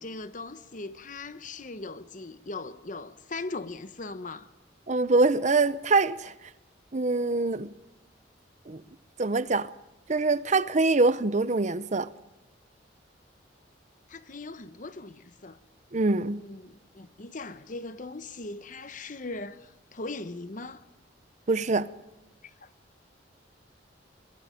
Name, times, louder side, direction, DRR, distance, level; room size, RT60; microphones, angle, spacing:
voice 1, 0.0-4.5 14.1-15.6 16.3-20.8 22.4-22.7, left 3 dB, 45° left, 1.0 m, -39 dB
voice 2, 4.9-6.3 6.9-7.7 8.7-8.8 9.2-9.7 10.1-12.1 15.9-16.4 21.5-21.9, right 3 dB, 40° right, 0.7 m, -24 dB
29.0 x 22.5 x 5.2 m
head